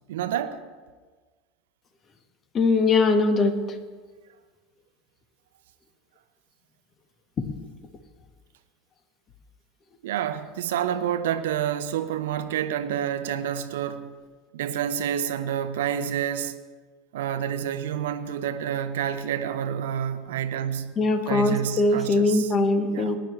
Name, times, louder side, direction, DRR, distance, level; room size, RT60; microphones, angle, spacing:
voice 1, 0.1-0.6 10.0-14.1 14.5-16.5 17.1-20.9 21.2-22.5 22.9-23.1, right 9 dB, 70° right, 0.7 m, -28 dB
voice 2, 2.5-3.5 21.0-23.2, left 3 dB, 35° left, 1.4 m, -21 dB
20.0 x 10.5 x 3.2 m
figure-of-eight pair, 75°, 0 cm